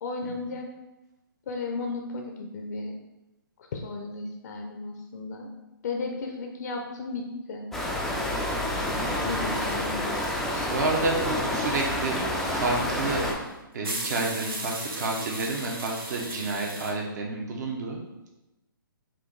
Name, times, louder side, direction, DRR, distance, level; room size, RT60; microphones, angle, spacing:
voice 1, 0.0-0.7 1.5-2.9 3.7-5.5 5.8-7.7 9.2-10.8, left 3 dB, 50° left, 2 dB, 0.5 m, -34 dB
sound 1, 7.7-13.3, left 1 dB, ahead, 0.4 m, -29 dB
voice 2, 8.8-9.1 10.7-13.2 13.7-18.0, right 3 dB, 50° right, 1 dB, 0.8 m, -30 dB
sound 2, 9.6-16.9, right 2 dB, 90° right, 1.1 m, -38 dB
4.4 x 2.5 x 3.9 m, 0.97 s
hypercardioid pair, 140°, 12 cm